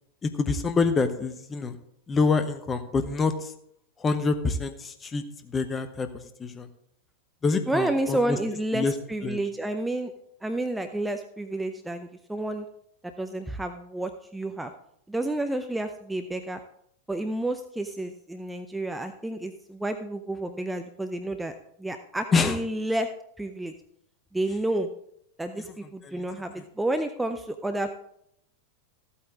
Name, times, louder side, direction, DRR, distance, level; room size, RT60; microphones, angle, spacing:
voice 1, 0.2-1.8 2.1-3.5 4.0-6.1 6.4-6.7 7.4-8.4 8.7-8.9 9.2-9.4 22.3-22.6 25.6-25.7 26.0-26.2, left 4 dB, 20° left, 9 dB, 1.0 m, -26 dB
voice 2, 7.7-10.1 10.4-12.7 13.2-14.7 15.1-16.6 17.1-23.1 23.4-23.7 24.3-24.9 25.4-27.9, right 1 dB, 5° right, 7 dB, 0.6 m, -30 dB
14.0 x 8.6 x 3.7 m, 0.72 s
figure-of-eight pair, 90°, 0 cm